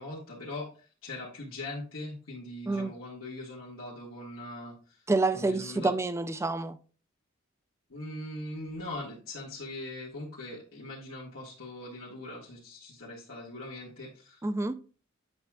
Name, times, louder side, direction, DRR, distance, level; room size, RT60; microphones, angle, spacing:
voice 1, 0.0-5.0 5.3-6.0 7.9-14.4, left 2 dB, 90° left, 1.6 m, -41 dB
voice 2, 5.1-6.8 14.4-14.7, right 3 dB, 15° right, 0.3 m, -28 dB
8.0 x 6.0 x 2.3 m
head